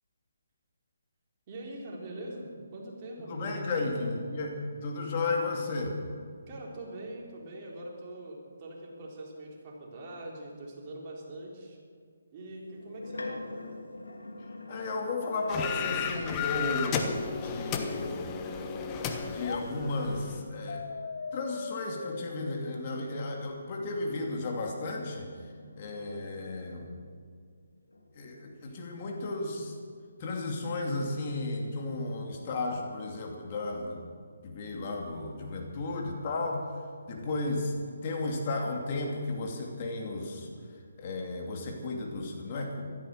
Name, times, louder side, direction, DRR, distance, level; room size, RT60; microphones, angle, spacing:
voice 1, 1.5-4.1 6.5-11.8 12.3-13.6 25.8-26.1, right 1 dB, 35° right, -2 dB, 3.8 m, -43 dB
voice 2, 3.2-4.6 4.8-6.0 14.7-18.2 19.3-20.9 21.3-26.8 28.1-29.8 30.2-34.0 34.4-36.7 37.0-37.7 38.0-40.5 41.0-42.8, left 2 dB, 35° left, 1 dB, 2.6 m, -34 dB
sound 1, 12.6-15.9 17.8-20.2 22.1-27.3 27.9-29.6, left 2 dB, 85° left, 2.3 m, -47 dB
sound 2, 15.5-20.4, left 6 dB, 20° left, 1.2 m, -34 dB
sound 3, 16.8-19.6 20.7-23.7, left 4 dB, 65° left, 0.7 m, -41 dB
16.0 x 13.0 x 6.6 m, 2.1 s
figure-of-eight pair, 145°, 0 cm